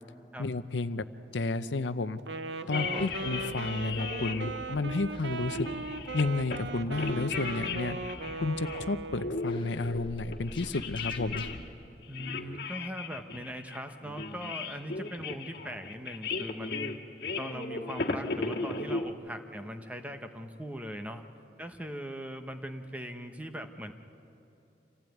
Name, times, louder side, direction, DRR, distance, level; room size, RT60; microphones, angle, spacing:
voice 1, 0.4-1.0 1.3-2.2 2.7-5.7 6.1-8.0 8.4-11.5, left 3 dB, 80° left, 12 dB, 0.7 m, -31 dB
Wind instrument woodwind instrument, 2.2-9.5, right 3 dB, 75° right, 0.8 m, -38 dB
sound 1, 2.7-4.5 4.9-5.0 5.4-6.6 6.9-8.9 9.2-11.6 12.0-19.1, left 3 dB, 55° left, 1.7 m, -36 dB
voice 2, 2.7-3.2 12.1-17.0 17.4-21.2 21.6-23.9, equal, 10° right, 6 dB, 1.0 m, -40 dB
sound 2, 2.9-11.6, left 1 dB, 25° left, 1.2 m, -48 dB
26.5 x 15.5 x 9.3 m, 2.9 s
head